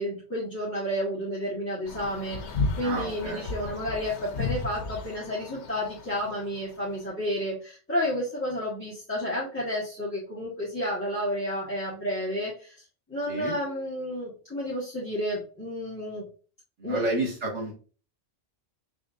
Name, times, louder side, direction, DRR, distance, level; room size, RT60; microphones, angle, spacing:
voice 1, 0.0-12.7 13.1-16.2 16.8-17.0, equal, 10° left, -8 dB, 1.5 m, -31 dB
sound 1, 1.9-6.9, left 3 dB, 75° left, 1.0 m, -34 dB
voice 2, 2.8-3.8 13.3-13.6 16.8-17.7, right 2 dB, 85° right, -3 dB, 1.9 m, -31 dB
5.0 x 3.4 x 2.5 m, 0.37 s
omnidirectional pair, 1.2 m